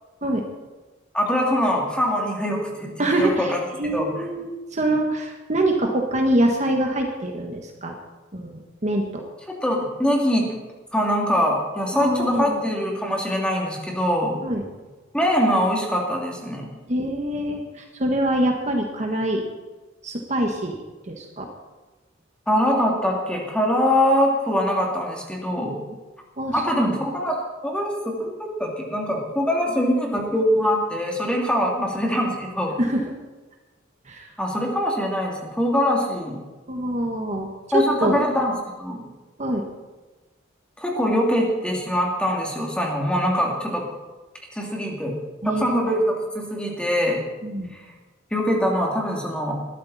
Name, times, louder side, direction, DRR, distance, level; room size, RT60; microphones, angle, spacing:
voice 1, 1.1-3.5 3.9-4.1 9.5-10.6 10.9-14.4 15.1-16.7 22.5-25.7 26.5-27.4 27.6-32.8 34.4-36.4 37.7-39.0 40.8-43.8 44.5-45.2 45.4-47.2 47.7-47.8 48.3-49.6, equal, 5° left, -1 dB, 2.9 m, -23 dB
voice 2, 3.0-8.0 8.3-9.2 11.9-12.6 14.4-14.6 16.9-19.4 20.0-20.8 21.0-21.5 26.4-27.0 31.8-31.9 32.8-33.0 34.1-34.3 36.7-37.5 37.7-38.2 39.4-39.6 45.4-45.6 47.4-47.7, right 1 dB, 35° right, 2 dB, 1.7 m, -24 dB
20.5 x 13.5 x 4.3 m, 1.2 s
head